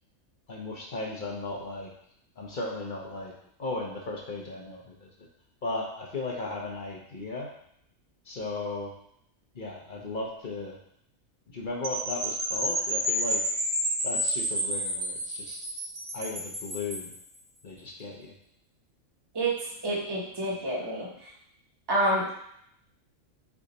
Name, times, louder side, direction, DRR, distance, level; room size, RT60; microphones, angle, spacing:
voice 1, 0.5-1.9 2.4-3.3 3.6-5.1 5.6-7.5 8.3-8.9 9.5-10.8 11.5-13.4 14.0-15.6 16.1-17.1 17.6-18.3, left 2 dB, 45° left, -2 dB, 0.7 m, -36 dB
sound 1, 11.8-17.1, equal, 45° right, 1.6 m, -30 dB
voice 2, 19.8-21.1 21.9-22.3, right 1 dB, 20° right, -5 dB, 0.9 m, -27 dB
3.8 x 3.5 x 4.0 m, 0.71 s
omnidirectional pair, 1.4 m